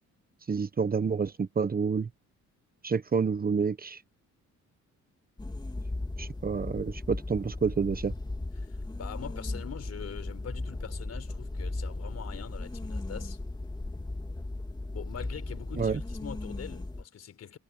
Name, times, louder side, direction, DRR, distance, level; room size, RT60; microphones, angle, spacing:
voice 1, 0.5-2.1 2.8-4.0 6.2-8.1 15.8-16.0, right 5 dB, 30° right, 1.1 m, -28 dB
sound 1, 5.4-17.0, left 2 dB, 15° left, 2.6 m, -37 dB
voice 2, 8.6-13.4 14.9-17.6, left 8 dB, 55° left, 4.8 m, -43 dB
cardioid pair, 90°, 30 cm